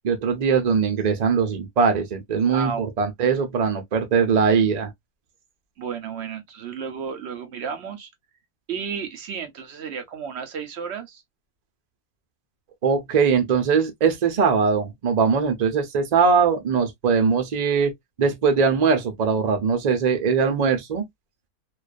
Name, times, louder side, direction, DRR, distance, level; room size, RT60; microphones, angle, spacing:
voice 1, 0.0-4.9 12.8-17.9 18.2-21.0, right 5 dB, 80° right, 0.3 m, -21 dB
voice 2, 2.5-2.9 5.8-8.1 8.7-11.2, right 6 dB, 60° right, 0.7 m, -32 dB
2.4 x 2.2 x 2.4 m
omnidirectional pair, 1.6 m